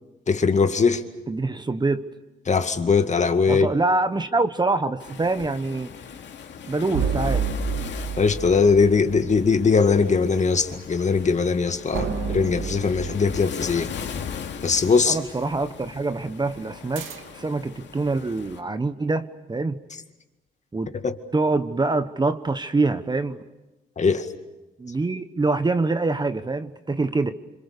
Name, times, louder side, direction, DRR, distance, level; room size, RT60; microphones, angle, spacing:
voice 1, 0.3-1.0 2.5-3.7 8.2-13.9 14.6-15.2 21.0-21.1 24.0-24.3, left 5 dB, 35° left, 2.1 m, -20 dB
voice 2, 1.3-2.0 3.5-5.9 6.7-7.5 12.0-12.2 15.0-19.8 20.7-20.9 21.3-23.4 24.8-27.3, right 3 dB, 20° right, 1.2 m, -25 dB
Waves surf, 5.0-18.6, left 7 dB, 65° left, 2.5 m, -39 dB
sound 1, 6.9-9.7 11.9-14.6 17.0-17.6, right 5 dB, 80° right, 2.1 m, -30 dB
27.5 x 25.5 x 6.8 m
cardioid pair, 90°, 20 cm